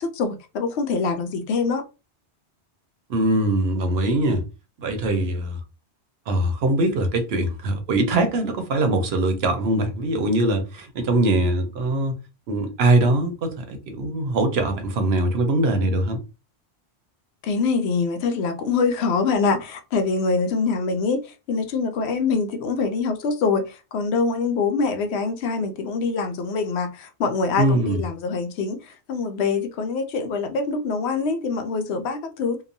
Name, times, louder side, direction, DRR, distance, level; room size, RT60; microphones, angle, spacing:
voice 1, 0.0-1.8 17.4-32.6, left 4 dB, 75° left, 0.8 m, -24 dB
voice 2, 3.1-4.4 4.8-5.6 6.3-12.1 12.5-16.2 27.6-28.0, right 1 dB, 70° right, 0.9 m, -22 dB
2.9 x 2.1 x 2.5 m
omnidirectional pair, 1.1 m